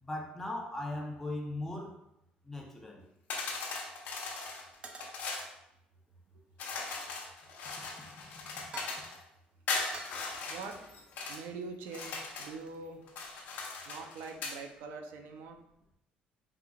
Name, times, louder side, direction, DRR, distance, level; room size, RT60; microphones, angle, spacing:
voice 1, 0.0-2.0 2.5-3.0, left 1 dB, 10° left, 0 dB, 0.7 m, -38 dB
sound 1, 3.3-5.5 6.6-9.2 9.7-11.4 11.9-12.6 13.1-14.6, left 4 dB, 65° left, 0.9 m, -39 dB
sound 2, 3.7-4.0 4.8-5.5 6.6-7.4 8.6-9.2 9.9-11.4 11.9-12.2 12.4-13.5, right 3 dB, 30° right, 0.5 m, -51 dB
voice 2, 10.5-10.9 11.3-13.1 13.9-15.6, right 4 dB, 80° right, 5 dB, 0.5 m, -44 dB
4.8 x 3.7 x 2.4 m, 0.80 s
cardioid pair, 135°, 3 cm